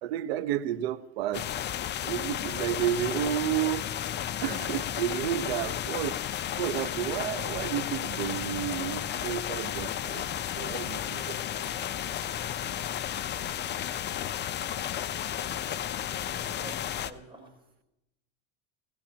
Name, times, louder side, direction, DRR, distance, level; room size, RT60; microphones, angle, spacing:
voice 1, 0.0-1.5 2.0-3.9 4.4-6.2 6.6-10.2 10.5-11.9 12.6-12.7, right 11 dB, 85° right, 1.0 m, -31 dB
sound 1, 1.3-17.1, left 10 dB, 35° left, 0.8 m, -33 dB
voice 2, 16.0-17.6, right 2 dB, 15° right, 7.0 m, -49 dB
20.5 x 16.0 x 2.9 m
supercardioid pair, 110°, 29 cm